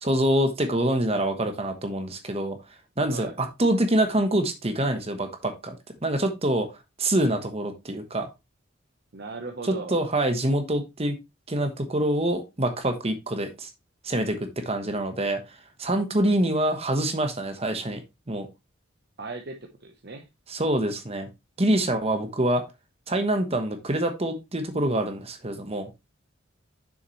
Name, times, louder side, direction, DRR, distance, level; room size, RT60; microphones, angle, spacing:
voice 1, 0.0-2.6 3.0-5.7 6.0-6.7 7.0-8.3 9.6-11.2 11.5-13.7 14.0-15.4 15.8-18.0 18.3-18.5 20.5-21.3 21.6-22.6 23.1-25.9, right 1 dB, 30° right, 1.2 m, -25 dB
voice 2, 9.1-10.0 19.2-20.3, right 3 dB, 55° right, 0.9 m, -37 dB
7.0 x 6.3 x 3.1 m
head